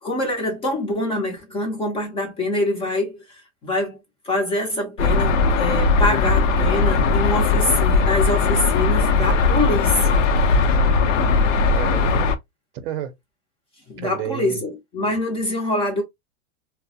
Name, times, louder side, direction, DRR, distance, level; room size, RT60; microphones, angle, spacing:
voice 1, 0.0-4.0 4.2-10.2 13.9-16.0, left 1 dB, 15° left, 0.5 m, -25 dB
sound 1, 5.0-12.4, left 4 dB, 80° left, 0.6 m, -18 dB
voice 2, 10.8-11.3 11.7-12.3 12.7-13.1 14.0-14.6, right 10 dB, 50° right, 0.6 m, -31 dB
2.2 x 2.1 x 2.6 m
supercardioid pair, 145°, 37 cm